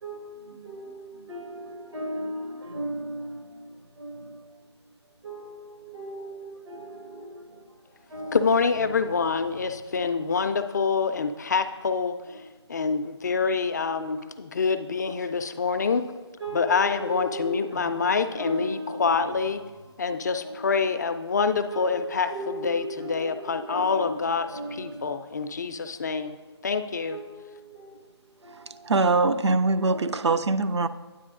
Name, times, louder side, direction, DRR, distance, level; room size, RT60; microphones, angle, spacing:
voice 1, 0.0-3.4 4.0-4.4 5.2-7.3 8.1-9.0 12.3-12.4 16.4-19.3 20.4-20.8 21.7-25.1 27.1-27.5 27.8-27.9 28.4-28.7 29.9-30.3, right 1 dB, 90° right, 1.6 m, -37 dB
voice 2, 8.3-12.2 12.7-16.1 16.5-19.6 20.0-24.5 24.8-26.4 26.6-27.2, left 5 dB, 40° left, 0.4 m, -26 dB
voice 3, 28.8-30.9, right 3 dB, 75° right, 0.5 m, -22 dB
9.9 x 8.1 x 2.5 m
figure-of-eight pair, 155°, 15 cm